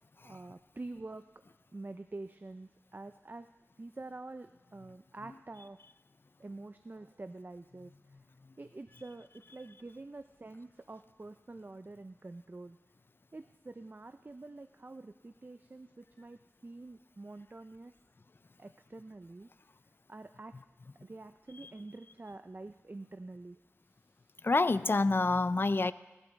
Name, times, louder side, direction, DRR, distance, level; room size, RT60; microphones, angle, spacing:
voice 1, 0.2-1.2 1.7-3.5 3.8-5.8 6.4-7.9 8.6-12.8 13.3-17.9 18.6-19.5 20.1-20.6 21.0-23.6 23.9-24.3, right 2 dB, 40° right, 10 dB, 0.4 m, -47 dB
voice 2, 24.4-25.9, left 3 dB, 45° left, 15 dB, 0.4 m, -28 dB
17.5 x 11.5 x 4.0 m, 1.2 s
wide cardioid pair, 55°, 5 cm